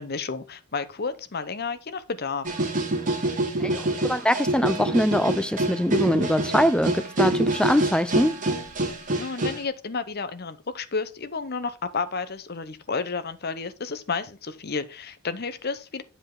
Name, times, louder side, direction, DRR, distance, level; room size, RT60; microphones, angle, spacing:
voice 1, 0.0-2.5 9.1-16.0, left 4 dB, 45° left, 0.7 m, -31 dB
sound 1, 2.4-9.6, right 2 dB, 35° right, 2.5 m, -26 dB
voice 2, 3.6-8.4, equal, 5° left, 0.4 m, -23 dB
9.8 x 5.5 x 3.7 m
head